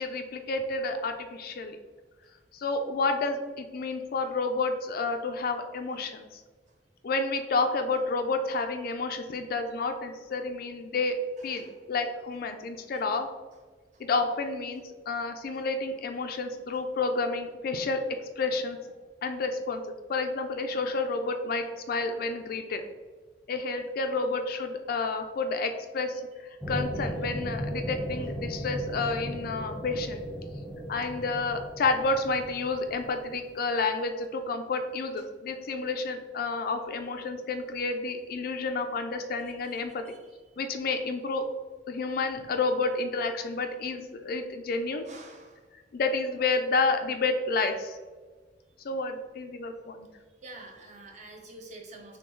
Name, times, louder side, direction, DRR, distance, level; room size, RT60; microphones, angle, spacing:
voice 1, 0.0-1.8 2.5-6.4 7.0-11.2 11.4-13.3 14.0-18.0 18.4-18.8 19.2-19.8 20.1-22.8 23.5-26.2 26.7-30.2 30.9-40.0 40.6-41.4 41.9-45.1 45.9-48.0 48.8-50.1, left 3 dB, 55° left, 6 dB, 0.4 m, -30 dB
voice 2, 11.4-11.8 12.9-13.0 13.9-14.0 27.3-27.4 32.9-33.0 35.5-35.6 39.4-40.2 45.0-45.7 50.4-52.2, right 2 dB, 40° right, 1 dB, 0.8 m, -49 dB
sound 1, 26.6-33.5 33.9-34.0, equal, 15° right, 1.1 m, -36 dB
6.7 x 2.3 x 3.1 m, 1.4 s
head